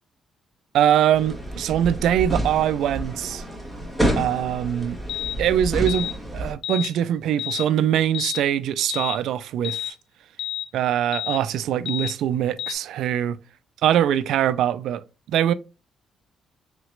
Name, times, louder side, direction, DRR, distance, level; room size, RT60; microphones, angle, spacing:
voice 1, 0.7-3.4 4.2-5.0 5.4-9.9 10.7-13.4 13.8-15.0 15.3-15.5, right 10 dB, 80° right, 0.3 m, -22 dB
sound 1, 1.1-6.5, right 1 dB, 5° left, 1.4 m, -29 dB
sound 2, 5.1-5.4 5.9-6.2 6.6-6.9 7.4-7.7 8.1-8.4 8.9-9.2 9.6-9.9 10.4-10.7 11.1-11.4 11.9-12.1 12.6-12.8, left 12 dB, 85° left, 0.3 m, -30 dB
3.9 x 2.9 x 3.1 m
cardioid pair, 90°, 0 cm